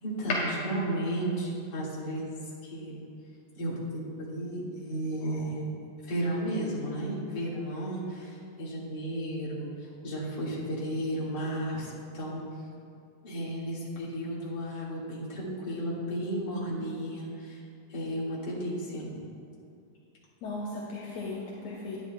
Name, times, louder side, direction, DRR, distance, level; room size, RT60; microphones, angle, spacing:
voice 1, 0.0-0.3 0.6-2.4 2.7-3.0 3.6-3.7 4.2-5.7 6.1-9.7 10.0-12.4 13.2-17.6 17.9-19.2, right 1 dB, 35° left, -7 dB, 2.0 m, -33 dB
voice 2, 20.4-22.0, left 2 dB, 80° left, -4 dB, 1.5 m, -35 dB
11.5 x 9.9 x 2.3 m, 2.5 s
omnidirectional pair, 4.0 m